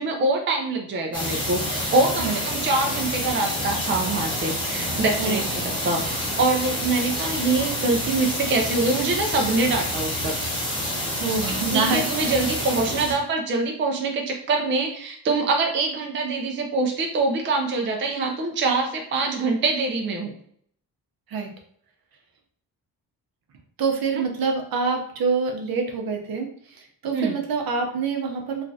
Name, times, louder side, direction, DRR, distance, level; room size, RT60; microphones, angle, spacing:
voice 1, 0.0-10.4 11.5-20.3 27.1-27.4, right 3 dB, 30° right, 2 dB, 0.4 m, -24 dB
sound 1, 1.1-13.1, equal, 10° left, 0.8 m, -28 dB
voice 2, 5.2-5.5 11.2-12.3 21.3-21.5 23.8-28.6, right 4 dB, 65° right, 3 dB, 0.7 m, -26 dB
3.1 x 2.4 x 2.6 m, 0.63 s
wide cardioid pair, 145°, 38 cm